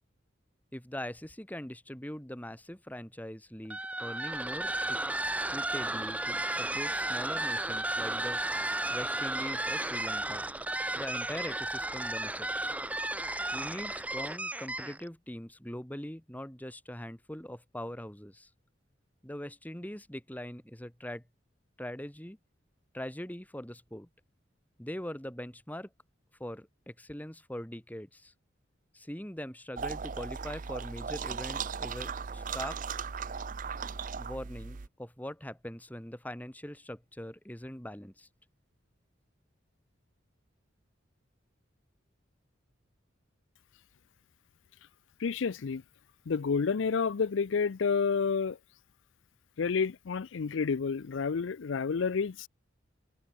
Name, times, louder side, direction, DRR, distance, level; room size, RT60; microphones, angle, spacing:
voice 1, 0.7-5.0 5.5-8.4 8.9-10.5 10.9-12.8 13.5-18.5 19.2-21.2 21.8-22.4 22.9-24.1 24.8-25.9 26.4-28.3 28.9-32.8 34.1-38.3, left 1 dB, 10° left, 1.6 m, -42 dB
sound 1, 3.6-15.1, right 1 dB, 10° right, 1.1 m, -33 dB
sound 2, 29.8-34.9, right 6 dB, 45° right, 0.6 m, -37 dB
voice 2, 45.2-45.8 46.3-48.6 49.6-52.5, left 5 dB, 80° left, 0.5 m, -29 dB
head